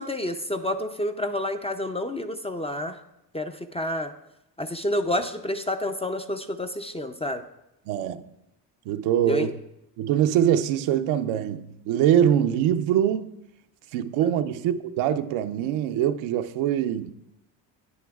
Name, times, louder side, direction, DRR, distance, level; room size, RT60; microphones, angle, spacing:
voice 1, 0.0-3.0 3.3-4.1 4.6-7.4 9.2-9.5, left 1 dB, 15° left, 0.4 m, -29 dB
voice 2, 7.9-8.2 8.9-9.5 10.0-13.3 13.9-17.1, right 10 dB, 75° right, 0.6 m, -23 dB
9.4 x 9.4 x 2.3 m
supercardioid pair, 65°, 49 cm